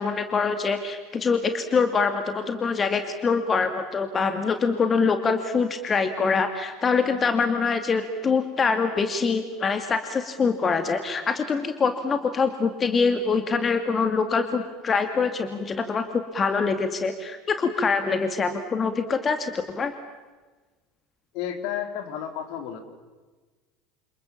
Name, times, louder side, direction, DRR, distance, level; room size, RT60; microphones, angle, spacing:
voice 1, 0.0-19.9, left 5 dB, 30° left, 8 dB, 2.3 m, -24 dB
voice 2, 21.3-22.8, left 9 dB, 60° left, 8 dB, 3.5 m, -32 dB
28.5 x 28.5 x 7.4 m, 1.3 s
figure-of-eight pair, 70°, 0 cm